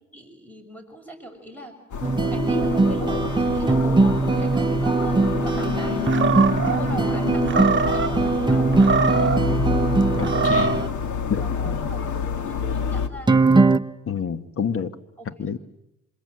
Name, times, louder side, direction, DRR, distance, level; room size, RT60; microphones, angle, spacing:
voice 1, 0.1-1.8 2.3-6.0 6.6-9.6 11.4-13.4 15.2-15.3, right 1 dB, 5° left, 5 dB, 6.4 m, -39 dB
sound 1, 1.9-13.1, left 6 dB, 70° left, 2.1 m, -28 dB
sound 2, 2.0-10.9 13.3-13.8, right 3 dB, 15° right, 1.0 m, -21 dB
Animal, 6.1-6.8 7.5-8.1 8.7-9.5 10.2-10.9, right 4 dB, 40° right, 1.1 m, -23 dB
voice 2, 10.2-10.9 11.3-11.9 14.1-15.0 15.2-15.6, left 7 dB, 45° left, 11 dB, 1.6 m, -28 dB
28.0 x 26.5 x 7.9 m, 0.88 s
cardioid pair, 90°, 30 cm